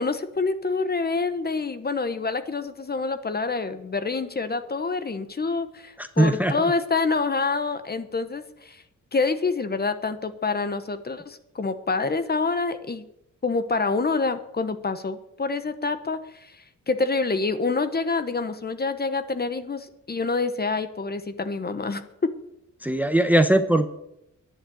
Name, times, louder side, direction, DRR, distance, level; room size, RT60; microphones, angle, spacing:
voice 1, 0.0-8.8 9.1-13.1 13.4-16.6 16.9-22.1, left 4 dB, 30° left, 11 dB, 1.0 m, -27 dB
voice 2, 6.2-6.5 22.8-23.9, right 1 dB, 5° right, 10 dB, 0.8 m, -19 dB
10.5 x 7.3 x 8.8 m, 0.79 s
wide cardioid pair, 105°, 31 cm